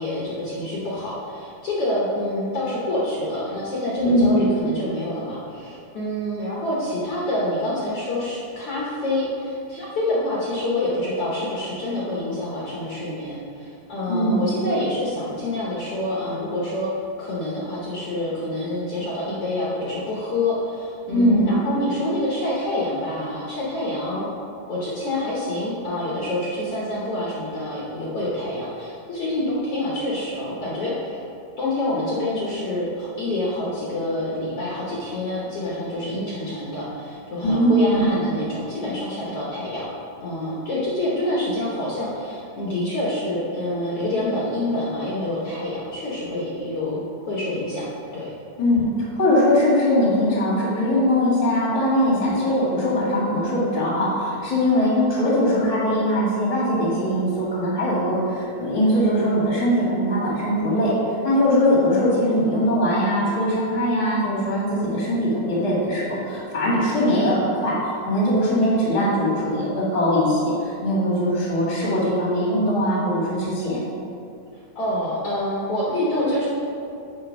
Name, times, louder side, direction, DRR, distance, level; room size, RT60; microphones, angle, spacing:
voice 1, 0.0-16.9 17.2-24.3 24.7-31.2 31.6-39.9 40.2-47.9 48.1-48.3 74.5-76.5, left 1 dB, 60° left, -6 dB, 1.7 m, -27 dB
voice 2, 4.0-4.4 14.1-14.4 21.1-21.5 37.4-38.1 48.6-67.7 68.0-73.8, equal, 15° left, -6 dB, 1.3 m, -21 dB
7.5 x 4.4 x 6.0 m, 2.5 s
omnidirectional pair, 3.7 m